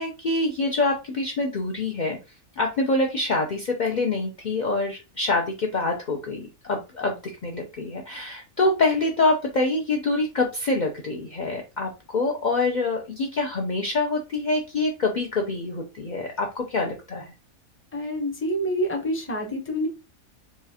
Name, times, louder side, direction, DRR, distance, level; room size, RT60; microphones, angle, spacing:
voice 1, 0.0-2.2 2.6-17.3, left 2 dB, 65° left, 1 dB, 0.4 m, -25 dB
voice 2, 17.9-19.9, equal, 15° left, 2 dB, 0.6 m, -27 dB
4.7 x 2.4 x 2.7 m, 0.28 s
omnidirectional pair, 1.5 m